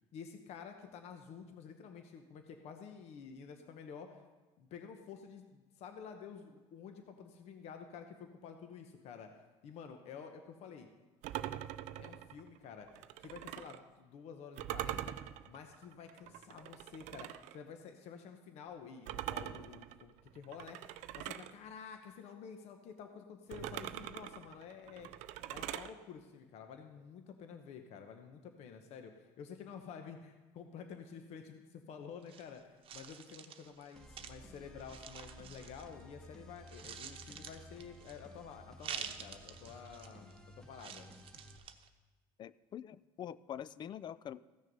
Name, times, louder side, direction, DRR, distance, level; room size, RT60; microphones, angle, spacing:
voice 1, 0.1-4.2 4.6-9.3 9.6-10.9 12.0-12.9 13.2-25.1 25.5-41.1, left 6 dB, 60° left, 6 dB, 1.1 m, -50 dB
sound 1, 11.2-13.8 14.6-17.6 19.1-21.5 23.5-25.9, right 13 dB, 75° right, 0.5 m, -43 dB
sound 2, 32.2-36.3 36.6-38.4 38.8-40.4 40.8-41.9, right 8 dB, 45° right, 0.9 m, -48 dB
sound 3, 33.9-41.6, equal, 5° left, 1.3 m, -56 dB
voice 2, 42.4-44.4, left 10 dB, 40° left, 18 dB, 0.4 m, -45 dB
15.0 x 6.5 x 5.4 m, 1.2 s
cardioid pair, 120°, 12 cm